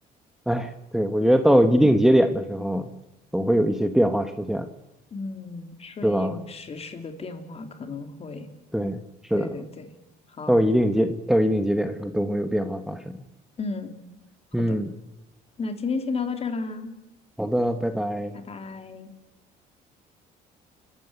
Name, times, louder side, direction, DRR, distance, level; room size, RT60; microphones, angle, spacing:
voice 1, 0.5-2.9 3.3-4.7 6.0-6.4 8.7-9.5 10.5-13.1 14.5-14.9 17.4-18.3, equal, ahead, 7 dB, 1.3 m, -22 dB
voice 2, 5.1-8.5 9.3-9.9 10.3-10.6 13.6-14.0 14.6-14.8 15.6-16.9 18.3-19.1, left 4 dB, 35° left, 7 dB, 3.0 m, -33 dB
29.0 x 13.0 x 9.5 m, 0.97 s
cardioid pair, 110°, 17 cm